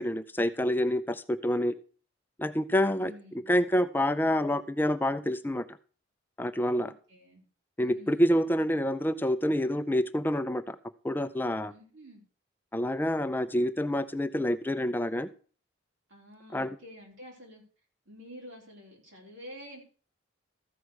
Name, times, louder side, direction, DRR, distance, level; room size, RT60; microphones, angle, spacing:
voice 1, 0.0-1.7 2.4-3.1 3.5-5.6 6.4-6.9 7.8-10.8 11.0-11.7 12.7-15.3 16.5-16.8, equal, 10° left, 11 dB, 0.4 m, -27 dB
voice 2, 2.9-3.5 6.8-7.4 7.8-8.3 11.7-12.2 16.1-17.6 18.1-19.8, equal, 85° right, -1 dB, 4.0 m, -49 dB
14.0 x 4.8 x 6.3 m, 0.40 s
head